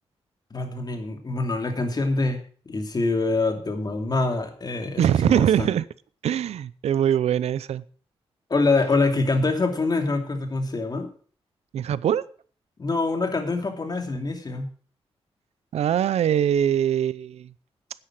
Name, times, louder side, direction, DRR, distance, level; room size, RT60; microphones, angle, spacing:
voice 1, 0.5-2.4 2.7-5.7 8.5-11.1 12.8-14.7, left 3 dB, 40° left, 5 dB, 2.7 m, -25 dB
voice 2, 5.0-5.9 6.2-7.8 11.7-12.2 15.7-17.5, right 10 dB, 85° right, 19 dB, 0.6 m, -22 dB
9.9 x 9.8 x 6.0 m, 0.43 s
cardioid pair, 75°, 11 cm